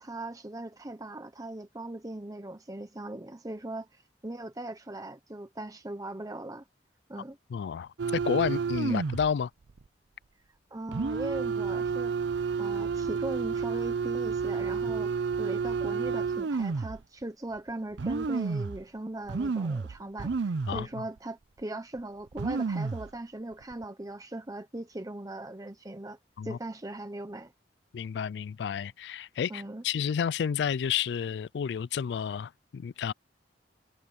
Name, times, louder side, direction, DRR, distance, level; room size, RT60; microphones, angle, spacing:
voice 1, 0.0-6.7 7.1-7.4 8.9-9.0 10.7-15.1 15.4-26.2 26.4-27.5 29.5-29.8, right 1 dB, 20° right, 0.9 m, -39 dB
voice 2, 7.5-9.5 20.7-20.9 26.4-26.6 27.9-33.1, left 7 dB, 70° left, 0.3 m, -31 dB
sound 1, 8.0-9.3 9.7-9.8 10.9-17.0 17.6-17.7 18.0-18.8 19.3-20.9 21.2-21.3 22.0-22.1 22.3-23.1 23.6-23.8, right 5 dB, 90° right, 0.5 m, -30 dB
head